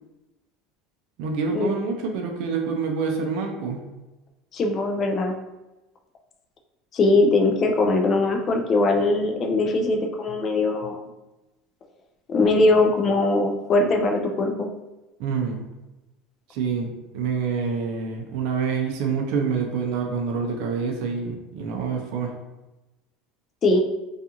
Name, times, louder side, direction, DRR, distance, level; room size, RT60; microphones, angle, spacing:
voice 1, 1.2-3.8 15.2-15.6 16.5-22.3, right 5 dB, 65° right, 2 dB, 0.4 m, -27 dB
voice 2, 4.5-5.3 6.9-11.1 12.3-14.7 23.6-23.8, left 2 dB, 30° left, 3 dB, 0.3 m, -21 dB
2.4 x 2.3 x 2.8 m, 1.0 s
supercardioid pair, 145°, 0 cm